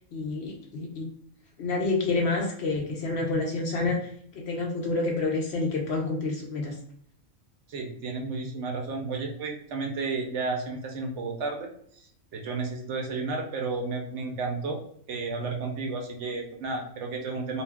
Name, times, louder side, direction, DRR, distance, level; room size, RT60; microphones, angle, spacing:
voice 1, 0.1-1.1 1.6-6.8, left 3 dB, 65° left, 0 dB, 0.7 m, -28 dB
voice 2, 7.7-11.7 11.9-12.1 12.3-14.8 15.1-17.6, right 3 dB, 65° right, 2 dB, 0.8 m, -32 dB
2.5 x 2.2 x 3.3 m, 0.65 s
omnidirectional pair, 1.4 m